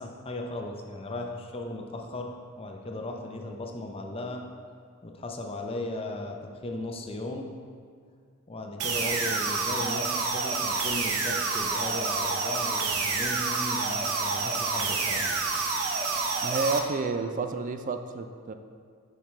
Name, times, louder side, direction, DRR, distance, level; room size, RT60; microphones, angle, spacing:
voice 1, 0.0-4.5 5.0-7.5 8.5-15.3, left 1 dB, 25° left, 3 dB, 0.5 m, -36 dB
sound 1, 8.8-16.8, right 4 dB, 75° right, 0.7 m, -28 dB
voice 2, 16.4-18.5, right 4 dB, 35° right, 8 dB, 0.3 m, -30 dB
7.0 x 5.9 x 3.2 m, 2.1 s
head